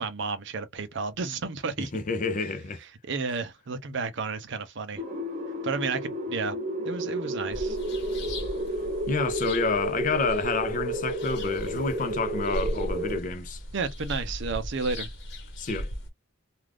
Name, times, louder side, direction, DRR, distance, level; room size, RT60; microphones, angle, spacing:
voice 1, 0.0-1.9 3.0-5.0 5.6-6.6 6.8-7.8 13.7-15.1, right 4 dB, 60° right, 0.6 m, -32 dB
voice 2, 1.8-2.8 9.1-13.6 15.6-15.9, left 4 dB, 40° left, 0.5 m, -29 dB
sound 1, 5.0-13.2, right 1 dB, 35° right, 0.8 m, -32 dB
sound 2, 7.5-16.1, equal, 60° left, 1.1 m, -37 dB
2.4 x 2.4 x 3.3 m
head